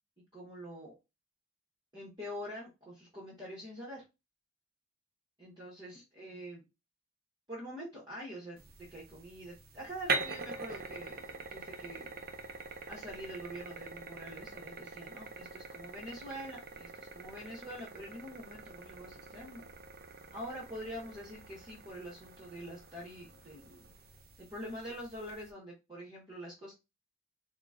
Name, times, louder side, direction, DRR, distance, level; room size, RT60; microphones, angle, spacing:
voice 1, 0.3-0.9 1.9-4.0 5.4-6.6 7.5-8.6 8.9-12.1 12.9-19.7 20.3-23.9 24.5-26.7, equal, 20° right, -5 dB, 1.0 m, -45 dB
sound 1, 8.6-25.5, right 4 dB, 45° right, 0.5 m, -44 dB
3.8 x 2.2 x 3.6 m, 0.25 s
head